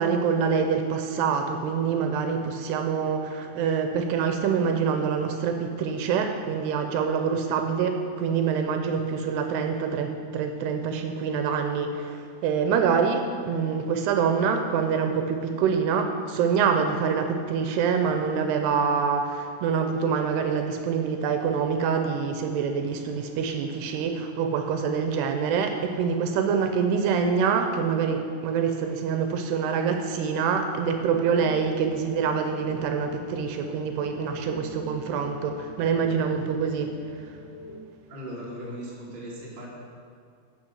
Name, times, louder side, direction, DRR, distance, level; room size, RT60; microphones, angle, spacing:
voice 1, 0.0-36.9, right 6 dB, 80° right, 5 dB, 2.5 m, -25 dB
sound 1, 30.8-37.8, left 1 dB, 90° left, 3.3 m, -42 dB
voice 2, 38.1-39.7, equal, 35° right, -6 dB, 0.8 m, -38 dB
10.0 x 6.4 x 6.3 m, 2.2 s
omnidirectional pair, 5.0 m